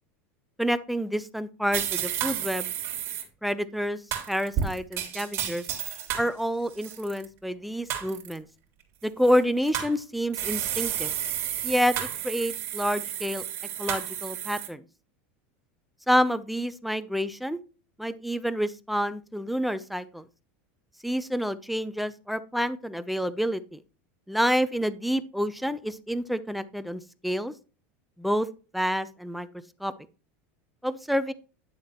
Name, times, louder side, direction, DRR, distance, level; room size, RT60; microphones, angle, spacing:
voice 1, 0.6-2.7 3.4-4.0 4.3-5.7 6.2-8.5 9.0-11.1 11.6-13.4 13.8-14.8 16.1-17.6 18.0-20.2 21.0-23.8 24.3-27.5 28.2-28.5 28.7-29.5 29.8-29.9 30.8-31.3, equal, ahead, 14 dB, 0.5 m, -28 dB
sound 1, 1.7-3.2 4.1-6.3 6.7-7.2 7.9-8.4 9.2-9.9 10.3-14.7, right 10 dB, 40° right, 3.1 m, -31 dB
11.0 x 7.3 x 2.9 m, 0.34 s
supercardioid pair, 135°, 7 cm